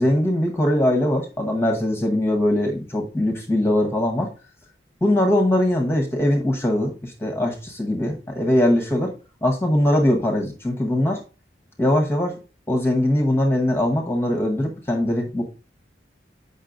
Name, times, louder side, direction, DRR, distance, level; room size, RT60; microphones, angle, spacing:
voice 1, 0.0-4.3 5.0-9.1 9.4-11.2 11.8-12.4 12.7-15.4, left 1 dB, 15° left, 1 dB, 0.9 m, -21 dB
7.3 x 5.4 x 2.5 m, 0.33 s
head